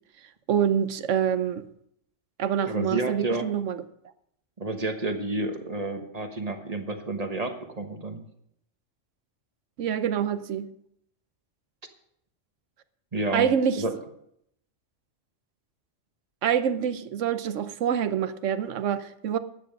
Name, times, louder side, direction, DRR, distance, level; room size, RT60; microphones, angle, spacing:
voice 1, 0.5-1.7 2.4-3.8 9.8-10.7 13.3-14.0 16.4-19.4, right 8 dB, 80° right, 1.1 m, -26 dB
voice 2, 2.6-3.5 4.6-8.2 13.1-13.5 13.8-13.9, right 2 dB, 30° right, 1.3 m, -30 dB
13.0 x 9.2 x 5.3 m
omnidirectional pair, 1.3 m